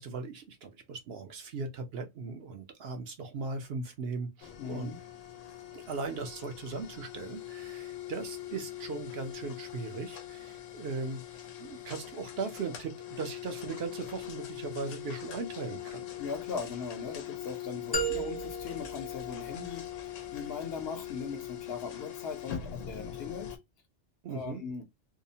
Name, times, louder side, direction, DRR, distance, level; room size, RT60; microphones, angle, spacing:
voice 1, 0.0-4.9 5.7-16.1 24.2-24.6, right 4 dB, 65° right, 0.7 m, -38 dB
sound 1, 4.4-23.6, left 12 dB, 90° left, 1.0 m, -42 dB
voice 2, 4.6-5.0 16.2-23.6 24.3-24.8, left 5 dB, 65° left, 0.7 m, -39 dB
sound 2, 17.9-20.0, right 3 dB, 35° left, 0.4 m, -35 dB
2.8 x 2.0 x 2.6 m
omnidirectional pair, 1.2 m